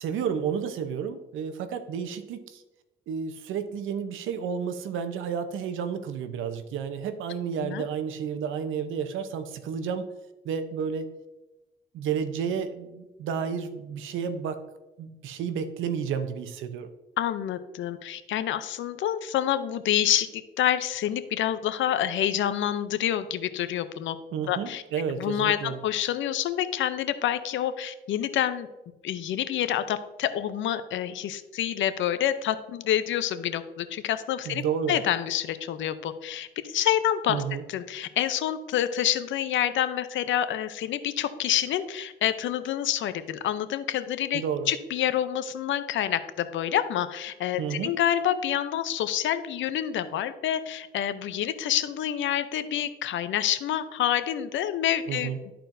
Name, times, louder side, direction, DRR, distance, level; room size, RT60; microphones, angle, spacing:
voice 1, 0.0-2.6 3.1-10.1 10.4-11.1 11.9-14.6 15.0-16.9 24.3-25.8 34.5-35.0 37.3-37.6 44.3-44.7 47.6-47.9 55.1-55.4, right 7 dB, 80° right, 9 dB, 0.8 m, -31 dB
voice 2, 17.2-24.2 24.5-24.8 25.2-28.7 29.0-37.4 37.7-55.3, left 11 dB, 75° left, 12 dB, 0.6 m, -27 dB
12.5 x 4.4 x 2.6 m, 1.0 s
cardioid pair, 90°, 20 cm